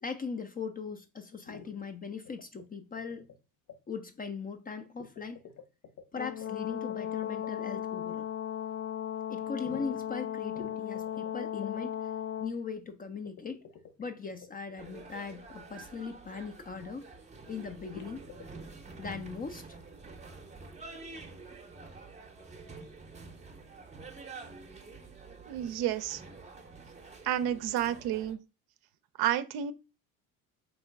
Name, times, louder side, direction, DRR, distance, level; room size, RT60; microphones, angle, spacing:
voice 1, 0.0-3.3 3.9-5.4 6.1-8.3 9.3-12.1 12.4-13.6 14.0-17.1 17.5-18.2 19.0-19.8, left 5 dB, 20° left, 0.4 m, -39 dB
sound 1, 1.5-1.7 2.3-2.7 3.0-3.4 3.7-3.8 5.0-7.8 9.6-10.1 10.6-11.8 13.3-14.8 17.6-18.4, left 6 dB, 45° left, 0.8 m, -49 dB
Brass instrument, 6.2-12.5, left 11 dB, 85° left, 0.6 m, -36 dB
sound 2, 14.8-28.3, right 3 dB, 15° right, 0.7 m, -48 dB
voice 2, 25.5-26.2 27.2-28.4 29.2-29.7, right 11 dB, 55° right, 0.6 m, -30 dB
3.7 x 3.0 x 3.3 m
hypercardioid pair, 60°, 45 cm